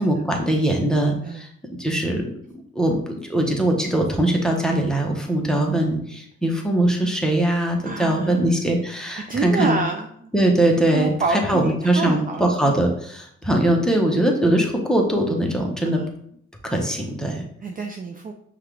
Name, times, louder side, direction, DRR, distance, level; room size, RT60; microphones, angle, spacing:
voice 1, 0.0-1.5 1.8-9.8 10.3-16.0 16.6-17.4, right 1 dB, ahead, 1 dB, 0.9 m, -21 dB
voice 2, 7.8-8.4 9.3-10.3 10.9-12.7 15.8-16.0 17.6-18.3, right 4 dB, 30° right, 4 dB, 0.4 m, -28 dB
5.5 x 2.5 x 3.3 m, 0.68 s
cardioid pair, 90°, 30 cm